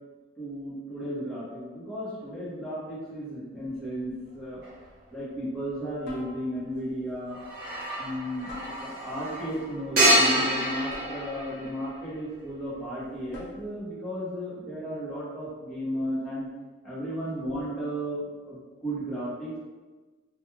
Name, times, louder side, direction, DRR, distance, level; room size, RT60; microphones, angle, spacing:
voice 1, 0.4-4.6 5.1-7.4 8.0-8.5 8.8-16.5 16.8-19.6, equal, ahead, -11 dB, 0.9 m, -34 dB
sound 1, 4.2-4.6 6.0-6.8 8.5-9.3 10.9-11.8 13.3-13.9, left 1 dB, 65° left, 0.8 m, -45 dB
sound 2, 4.6-4.8 7.3-12.1, right 1 dB, 45° right, 0.8 m, -27 dB
2.4 x 2.3 x 3.0 m, 1.3 s
head